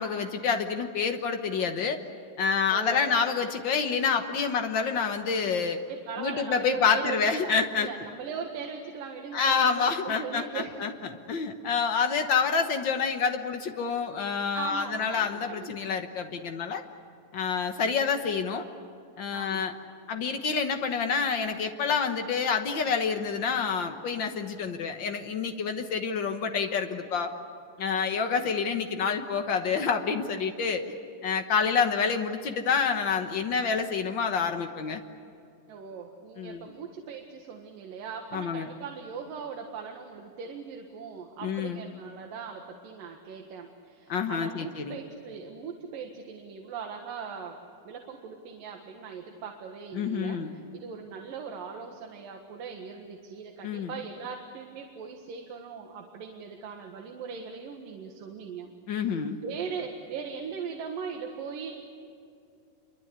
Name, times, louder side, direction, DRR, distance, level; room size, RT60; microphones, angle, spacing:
voice 1, 0.0-2.0 2.4-5.8 6.2-7.9 9.3-10.9 11.3-16.8 17.3-18.7 19.2-19.7 20.1-27.3 27.8-30.8 31.2-35.0 36.4-36.6 38.3-38.7 41.4-41.8 44.1-44.9 49.9-50.5 53.6-53.9 58.9-59.4, left 6 dB, 85° left, 5 dB, 1.0 m, -28 dB
voice 2, 2.7-3.2 5.9-10.7 14.5-15.8 19.3-19.7 28.0-28.2 31.5-31.7 35.7-47.6 47.8-61.7, right 6 dB, 75° right, 2 dB, 3.3 m, -39 dB
28.0 x 24.0 x 8.2 m, 2.5 s
omnidirectional pair, 4.1 m